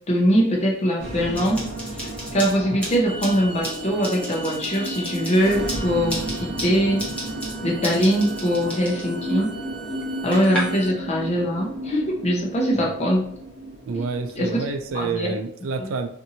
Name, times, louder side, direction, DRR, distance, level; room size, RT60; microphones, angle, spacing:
voice 1, 0.1-1.6 2.3-7.1 7.6-9.5 10.2-13.3 14.4-14.5 14.9-15.3, equal, 35° left, -2 dB, 0.7 m, -22 dB
sound 1, 1.0-14.9, right 1 dB, 45° right, 1.0 m, -34 dB
sound 2, 1.3-10.6, equal, 5° left, 0.9 m, -35 dB
Bowed string instrument, 3.0-11.0, right 3 dB, 25° right, 0.6 m, -40 dB
voice 2, 13.9-16.1, right 4 dB, 80° right, 7 dB, 0.4 m, -28 dB
2.7 x 2.6 x 2.7 m, 0.68 s
head